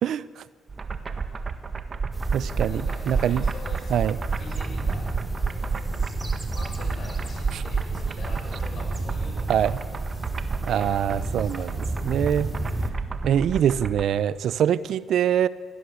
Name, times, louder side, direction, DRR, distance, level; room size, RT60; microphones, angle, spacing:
voice 1, 0.0-0.4 2.3-3.4 3.9-4.2 7.5-7.6 9.5-9.8 10.6-11.7 12.0-12.5 13.2-15.5, right 9 dB, 70° right, 17 dB, 0.7 m, -24 dB
sound 1, 0.7-14.0, right 4 dB, 35° right, 1.7 m, -31 dB
sound 2, 2.1-12.9, right 2 dB, 15° right, 2.8 m, -33 dB
voice 2, 2.6-4.0 4.4-5.1 5.4-5.9 6.5-9.8 10.1-10.3 10.7-11.7, left 3 dB, 55° left, 1 dB, 7.9 m, -44 dB
23.5 x 17.0 x 8.3 m, 1.5 s
cardioid pair, 90°, 0 cm